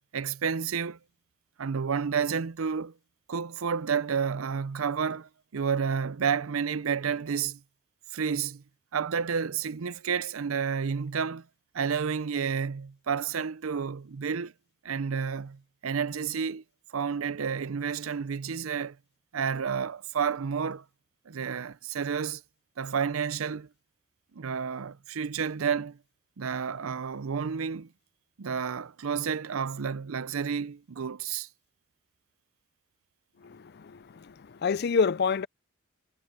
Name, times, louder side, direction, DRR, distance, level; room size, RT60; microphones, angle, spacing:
voice 1, 0.1-1.0 1.6-2.9 3.3-7.6 8.1-8.6 8.9-11.5 11.7-14.5 14.8-16.6 16.9-19.0 19.3-20.8 21.3-22.4 22.8-23.7 24.3-26.0 26.4-27.9 28.4-31.5, right 6 dB, 80° right, 0.6 m, -30 dB
voice 2, 33.4-35.5, left 5 dB, 50° left, 0.4 m, -28 dB
head